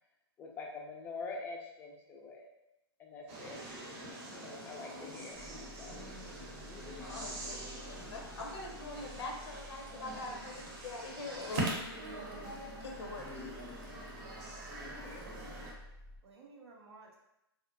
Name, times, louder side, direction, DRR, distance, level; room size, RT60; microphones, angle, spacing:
voice 1, 0.4-2.5 3.0-3.6 4.3-6.0 6.6-7.0 14.8-15.3, left 3 dB, 15° left, 1 dB, 0.3 m, -46 dB
sound 1, 3.3-15.7, right 1 dB, 40° right, 0.7 m, -43 dB
sound 2, 5.3-16.2, left 1 dB, 5° right, 0.8 m, -53 dB
voice 2, 5.8-6.9 14.9-15.7 16.2-17.2, right 2 dB, 70° right, -1 dB, 0.6 m, -57 dB
voice 3, 7.0-12.1 12.8-13.6, left 2 dB, 80° left, 0 dB, 0.5 m, -44 dB
2.6 x 2.1 x 2.5 m, 0.87 s
hypercardioid pair, 135°, 14 cm